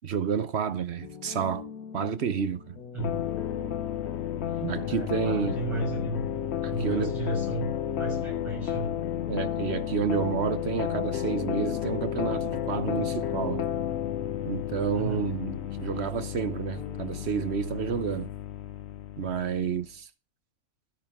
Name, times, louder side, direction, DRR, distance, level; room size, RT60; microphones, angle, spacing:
voice 1, 0.0-1.7 1.9-2.7 4.6-5.6 6.6-7.2 9.3-13.6 14.4-18.3 19.2-20.1, right 7 dB, 55° right, 1.1 m, -30 dB
sound 1, 1.0-17.3, left 7 dB, 90° left, 1.8 m, -43 dB
voice 2, 2.9-3.3 4.3-6.3 6.6-8.9 14.9-15.3 15.9-16.1, right 2 dB, 20° right, 6.2 m, -34 dB
sound 2, 3.0-19.7, left 10 dB, 55° left, 1.0 m, -32 dB
13.5 x 13.0 x 3.5 m
omnidirectional pair, 1.5 m